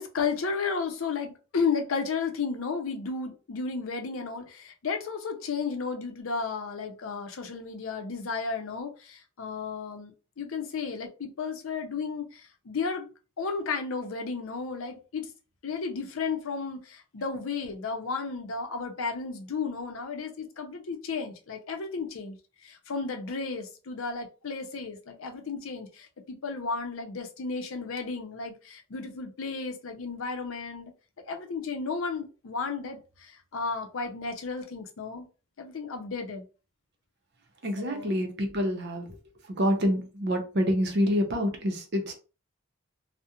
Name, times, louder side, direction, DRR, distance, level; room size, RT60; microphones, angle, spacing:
voice 1, 0.0-13.1 13.4-15.3 15.6-30.9 31.2-35.3 35.6-36.5 37.8-38.1, left 5 dB, 75° left, 4 dB, 0.5 m, -33 dB
voice 2, 37.6-39.0 39.6-42.1, equal, 55° right, 4 dB, 0.6 m, -27 dB
2.4 x 2.0 x 2.8 m, 0.34 s
head